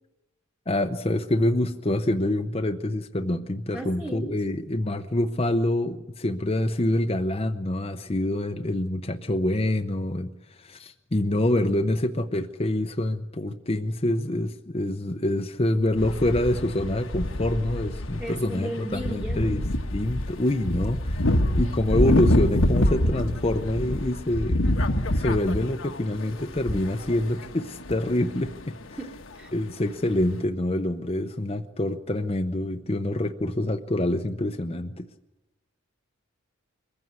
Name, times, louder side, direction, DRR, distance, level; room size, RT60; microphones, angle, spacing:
voice 1, 0.7-24.6 25.1-29.0 29.5-35.1, left 1 dB, 30° left, 6 dB, 0.7 m, -26 dB
voice 2, 3.7-4.4 18.2-19.6 29.0-29.5, right 1 dB, 5° right, 1 dB, 1.3 m, -35 dB
sound 1, 16.0-18.5 18.8-28.8 29.1-29.2 30.2-30.3, left 1 dB, 65° left, 1.3 m, -26 dB
22.5 x 15.0 x 9.5 m, 1.0 s
head